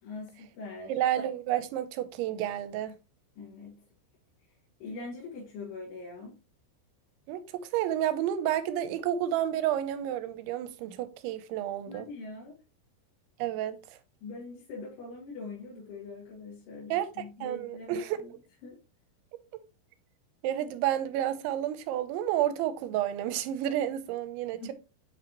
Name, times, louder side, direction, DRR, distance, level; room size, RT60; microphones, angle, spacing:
voice 1, 0.0-1.0 3.4-3.8 4.8-6.4 11.9-12.5 14.2-18.3 18.6-18.8 24.6-24.7, left 3 dB, 85° left, 4.8 m, -43 dB
voice 2, 0.9-2.9 7.3-12.1 13.4-13.8 16.9-17.1 17.4-18.2 20.4-24.7, right 11 dB, 85° right, 3.0 m, -30 dB
8.9 x 5.1 x 2.9 m
omnidirectional pair, 5.3 m